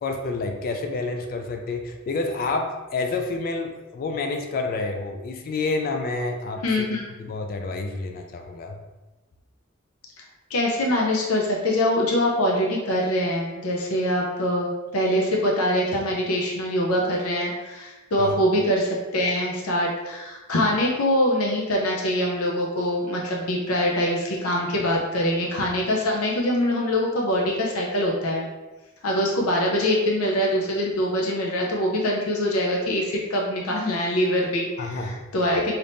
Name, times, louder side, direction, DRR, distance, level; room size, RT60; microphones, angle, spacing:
voice 1, 0.0-6.6 7.2-8.8 18.2-18.4 34.8-35.2, left 3 dB, 45° left, 5 dB, 0.3 m, -29 dB
voice 2, 6.6-7.0 10.5-28.5 29.0-35.7, left 1 dB, 85° left, -2 dB, 0.6 m, -24 dB
3.4 x 2.8 x 2.5 m, 1.1 s
head